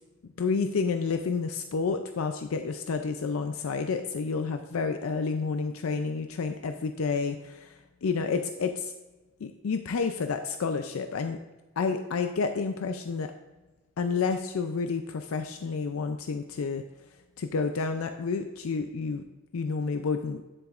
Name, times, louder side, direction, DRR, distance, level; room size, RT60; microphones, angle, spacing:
voice 1, 0.4-8.9 9.4-11.4 11.8-13.3 14.0-16.8 17.4-19.2 19.5-20.4, left 4 dB, 90° left, 7 dB, 0.4 m, -30 dB
10.0 x 7.8 x 2.5 m, 1.2 s
head